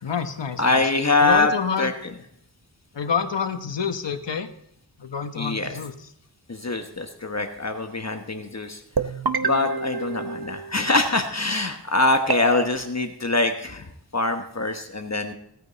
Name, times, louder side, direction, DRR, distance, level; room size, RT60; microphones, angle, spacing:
voice 1, 0.0-0.9 1.2-1.9 2.9-4.5 5.0-6.1, left 6 dB, 80° left, 7 dB, 1.2 m, -28 dB
voice 2, 0.6-1.5 1.8-1.9 5.4-5.7 6.5-8.8 9.4-13.8 14.1-15.3, left 3 dB, 40° left, 5 dB, 1.2 m, -23 dB
sound 1, 9.0-11.1 12.3-12.7, right 5 dB, 60° right, 0.9 m, -28 dB
17.0 x 9.1 x 4.1 m, 0.73 s
wide cardioid pair, 80°, 42 cm